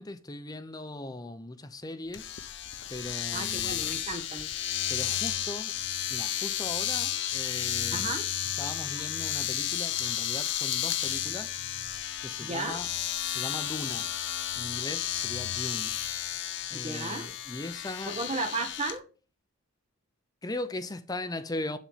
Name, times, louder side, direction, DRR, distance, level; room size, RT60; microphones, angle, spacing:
voice 1, 0.0-2.3 2.9-3.8 4.9-5.8 6.1-8.2 8.6-11.6 12.2-12.9 13.2-14.1 14.6-16.0 16.7-18.2 20.4-21.8, left 2 dB, 20° left, 0.6 m, -39 dB
Domestic sounds home sounds, 2.1-19.0, left 11 dB, 55° left, 0.6 m, -32 dB
voice 2, 3.3-4.5 7.9-8.3 12.4-12.8 16.7-17.3 18.1-19.1, right 3 dB, 30° right, 1.2 m, -34 dB
7.4 x 5.6 x 5.6 m
head